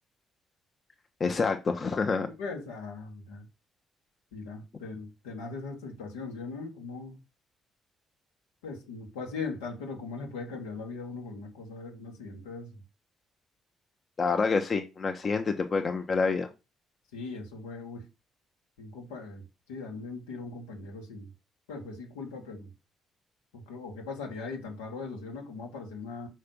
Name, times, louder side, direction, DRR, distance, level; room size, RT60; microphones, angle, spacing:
voice 1, 1.2-2.3 14.2-16.5, left 4 dB, 45° left, 0.9 m, -27 dB
voice 2, 2.4-3.5 4.3-7.2 8.6-12.8 17.1-18.1 18.8-21.3 21.7-22.7 23.5-26.3, left 4 dB, 80° left, 1.4 m, -39 dB
5.9 x 3.2 x 5.2 m
hypercardioid pair, 45°, 0 cm